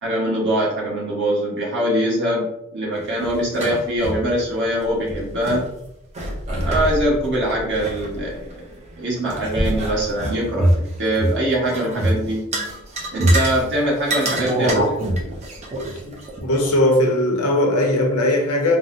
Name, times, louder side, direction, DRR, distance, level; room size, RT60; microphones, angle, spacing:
voice 1, 0.0-5.7 6.6-8.6 9.0-10.7 11.0-12.4 13.1-15.0, right 1 dB, 55° right, 1.2 m, -22 dB
sound 1, 3.1-4.3 4.6-4.7 5.0-5.6 6.1-8.7 9.2-11.3 11.7-12.1 12.5-13.6 14.0-16.7, right 1 dB, 30° right, 0.6 m, -24 dB
voice 2, 16.4-18.8, left 1 dB, 75° left, 0.7 m, -18 dB
3.8 x 2.0 x 2.6 m
head